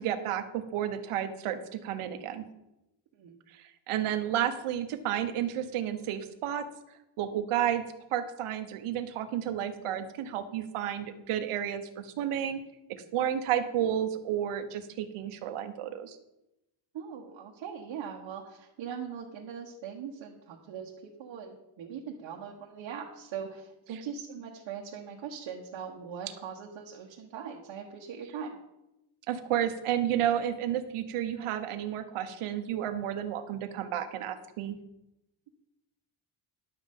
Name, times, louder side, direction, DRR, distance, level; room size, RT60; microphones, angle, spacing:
voice 1, 0.0-2.4 3.5-6.7 7.2-7.8 8.1-12.6 12.9-16.2 29.3-34.8, right 10 dB, 80° right, 9 dB, 1.2 m, -31 dB
voice 2, 16.9-28.6, right 7 dB, 60° right, -1 dB, 1.3 m, -41 dB
11.0 x 7.6 x 5.3 m, 0.90 s
cardioid pair, 180°, 50 cm